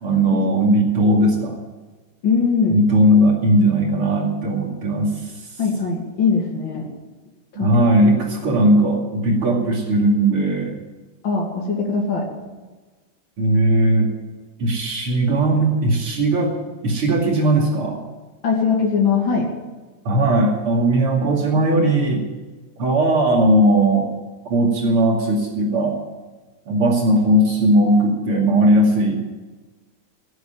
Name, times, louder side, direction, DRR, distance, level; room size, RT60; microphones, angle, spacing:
voice 1, 0.0-1.5 2.7-5.3 7.5-10.8 13.4-14.1 14.6-16.5 16.8-18.0 20.0-22.2 22.8-24.1 24.4-26.0 26.7-29.2, right 1 dB, 80° right, 0 dB, 3.4 m, -18 dB
voice 2, 2.2-2.8 5.6-6.9 7.6-8.0 11.2-12.2 18.4-19.5, left 5 dB, 60° left, -3 dB, 3.4 m, -21 dB
17.5 x 8.4 x 8.9 m, 1.3 s
omnidirectional pair, 2.4 m